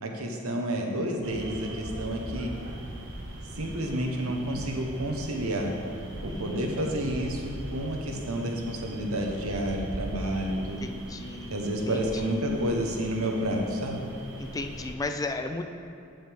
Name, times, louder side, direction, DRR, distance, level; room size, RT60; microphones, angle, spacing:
voice 1, 0.0-2.5 3.6-5.7 6.2-10.8 11.5-14.0, right 1 dB, 85° right, 1 dB, 1.1 m, -30 dB
sound 1, 1.2-14.9, right 1 dB, 60° right, 1.0 m, -40 dB
voice 2, 6.3-7.1 10.6-12.4 14.4-15.6, left 3 dB, 15° left, 7 dB, 0.3 m, -36 dB
8.9 x 7.7 x 3.5 m, 2.5 s
head